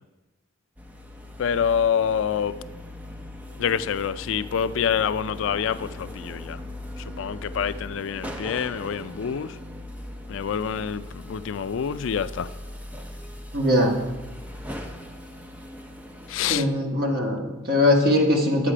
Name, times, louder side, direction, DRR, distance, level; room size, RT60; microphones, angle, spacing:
sound 1, 0.8-16.6, left 1 dB, 5° right, 0.6 m, -39 dB
voice 1, 1.4-2.5 3.6-6.6 7.2-9.5 10.3-12.5 16.3-16.6, left 7 dB, 65° left, 0.4 m, -26 dB
voice 2, 13.5-14.0 16.5-18.7, left 1 dB, 45° right, 1.6 m, -21 dB
9.9 x 7.4 x 5.0 m
head